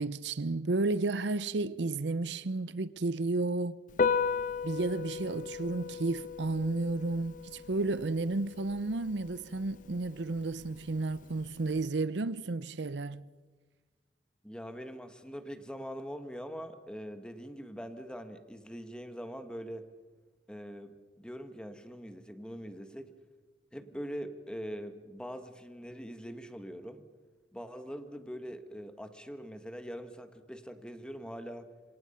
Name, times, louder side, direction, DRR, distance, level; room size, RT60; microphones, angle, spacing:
voice 1, 0.0-3.8 4.6-13.3, right 3 dB, 80° right, 0.7 m, -32 dB
Piano, 3.9-11.9, left 5 dB, 50° left, 0.6 m, -36 dB
voice 2, 14.4-19.8 20.5-23.1 23.7-27.0 27.5-31.7, equal, 5° left, 1.7 m, -43 dB
27.0 x 26.0 x 5.7 m
head